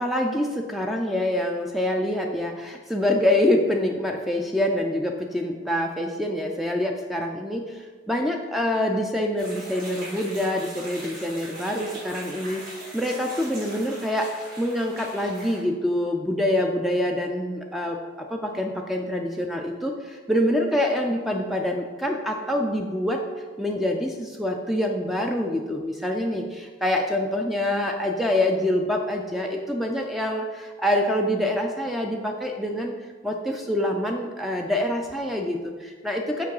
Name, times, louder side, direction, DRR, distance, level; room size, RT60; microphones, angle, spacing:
voice 1, 0.0-23.2 23.6-32.9 33.2-36.5, left 1 dB, ahead, 2 dB, 0.3 m, -26 dB
sound 1, 9.4-15.6, right 1 dB, 45° right, 2.1 m, -40 dB
5.8 x 4.5 x 4.8 m, 1.4 s
head